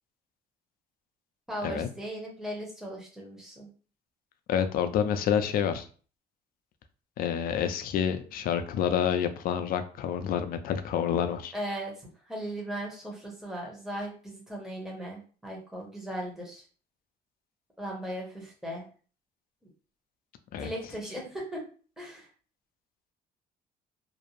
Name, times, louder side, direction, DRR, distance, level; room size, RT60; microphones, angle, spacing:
voice 1, 1.5-3.7 11.5-16.6 17.8-18.8 20.6-21.6 22.0-22.3, right 1 dB, 5° right, -2 dB, 0.9 m, -37 dB
voice 2, 4.5-5.9 7.2-11.5 20.5-20.7, left 8 dB, 60° left, 9 dB, 0.4 m, -28 dB
2.6 x 2.0 x 2.9 m, 0.40 s
cardioid pair, 110°, 17 cm